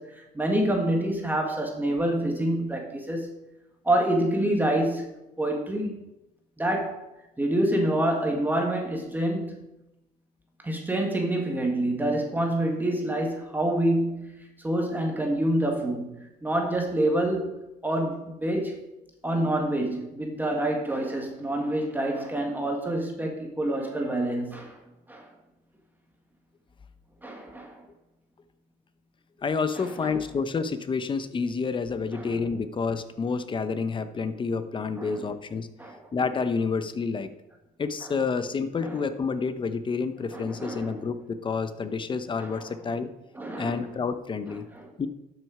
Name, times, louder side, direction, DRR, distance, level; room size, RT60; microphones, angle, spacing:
voice 1, 0.0-3.3 3.8-5.1 5.4-6.0 6.6-7.1 7.4-9.7 10.6-17.6 17.8-18.8 19.2-24.8 25.1-25.3 27.2-27.8 29.7-30.4 32.1-32.5 35.0-35.4 35.8-36.1 38.0-38.2 38.8-39.0 40.3-41.1 42.4-42.8 43.3-44.0 44.7-44.9, right 1 dB, 10° right, 2 dB, 1.6 m, -27 dB
voice 2, 29.4-35.7 36.1-37.3 37.8-43.1 43.6-44.7 45.0-45.1, left 5 dB, 30° left, 11 dB, 0.8 m, -29 dB
12.0 x 6.5 x 4.9 m, 0.92 s
cardioid pair, 110°, 17 cm